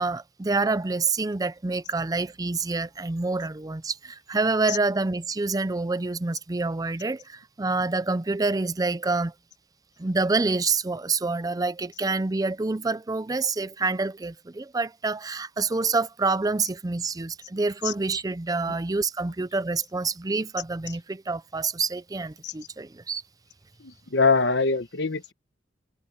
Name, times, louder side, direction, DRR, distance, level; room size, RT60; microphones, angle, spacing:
voice 1, 0.0-9.3 10.0-23.2, right 3 dB, 20° right, 0.5 m, -27 dB
voice 2, 23.8-25.3, left 4 dB, 65° left, 1.2 m, -23 dB
head